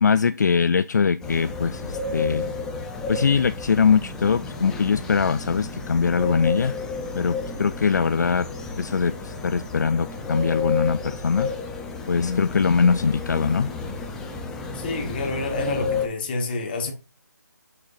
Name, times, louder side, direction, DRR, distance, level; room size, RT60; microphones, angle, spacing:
voice 1, 0.0-2.5 3.1-6.7 7.2-8.5 8.8-11.5 12.1-13.7, left 5 dB, 65° left, 0.4 m, -22 dB
sound 1, 1.2-16.1, left 4 dB, 5° left, 0.5 m, -32 dB
voice 2, 14.7-16.9, left 3 dB, 30° left, 1.6 m, -28 dB
6.3 x 6.3 x 2.6 m
figure-of-eight pair, 155°, 10 cm